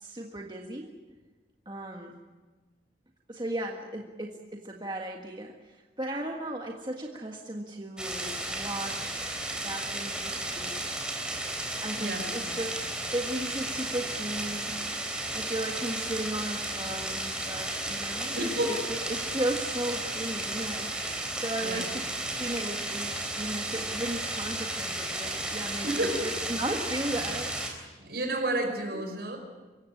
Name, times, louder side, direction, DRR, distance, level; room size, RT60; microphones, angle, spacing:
voice 1, 0.0-0.9 1.7-2.2 3.3-9.4 9.6-11.0 11.8-12.8 13.1-14.8 15.3-21.1 21.4-27.5 28.9-29.0, right 1 dB, 25° right, 1 dB, 1.6 m, -36 dB
sound 1, 8.0-27.7, right 1 dB, 5° right, 3.7 m, -34 dB
voice 2, 12.0-12.3 18.3-18.8 21.6-21.9 25.8-26.2 28.0-29.4, right 1 dB, 60° right, 4 dB, 5.5 m, -30 dB
25.5 x 15.5 x 9.9 m, 1.3 s
head